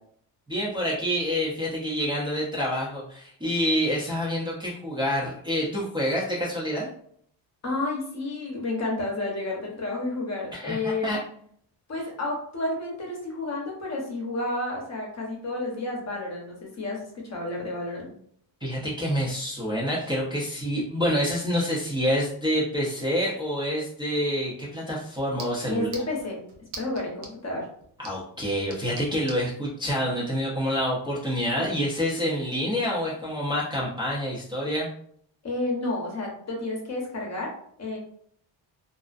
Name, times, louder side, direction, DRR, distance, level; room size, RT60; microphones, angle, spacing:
voice 1, 0.5-6.9 10.5-11.2 18.6-25.9 28.0-34.9, equal, 10° right, -7 dB, 0.6 m, -27 dB
voice 2, 7.6-11.1 11.9-18.1 25.7-26.4 26.8-27.7 35.4-37.5 37.8-38.0, left 2 dB, 35° left, -1 dB, 0.9 m, -31 dB
sound 1, 24.2-29.5, right 4 dB, 90° right, 0.7 m, -46 dB
2.5 x 2.1 x 2.4 m, 0.63 s
cardioid pair, 100°, 48 cm